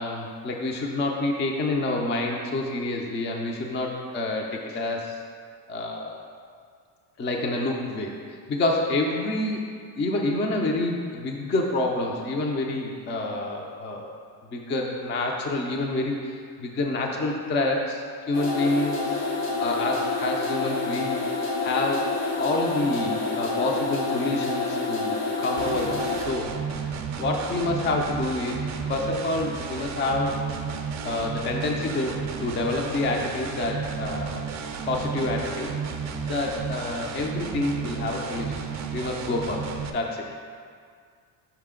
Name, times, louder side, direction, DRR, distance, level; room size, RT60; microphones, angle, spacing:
voice 1, 0.0-5.2 5.7-6.2 7.2-9.7 10.0-14.1 14.5-19.3 19.6-22.1 22.4-26.5 26.8-30.4 31.0-34.5 34.9-38.6 38.9-40.2, left 2 dB, 25° left, 0 dB, 0.4 m, -28 dB
sound 1, 18.3-26.3, left 3 dB, 85° left, 1.1 m, -28 dB
sound 2, 25.6-39.9, right 6 dB, 40° right, 0.5 m, -33 dB
5.7 x 4.9 x 3.7 m, 2.1 s
cardioid pair, 125°, 46 cm